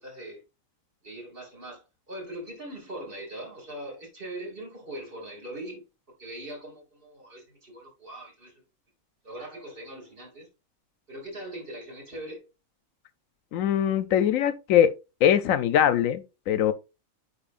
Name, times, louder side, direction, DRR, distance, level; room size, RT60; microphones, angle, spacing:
voice 1, 0.0-0.4 1.0-5.9 6.2-8.6 9.2-10.5 11.1-12.5, right 1 dB, 40° right, 2.5 m, -41 dB
voice 2, 13.5-14.9 15.2-16.7, left 10 dB, 75° left, 1.0 m, -22 dB
8.9 x 4.6 x 2.4 m
omnidirectional pair, 1.4 m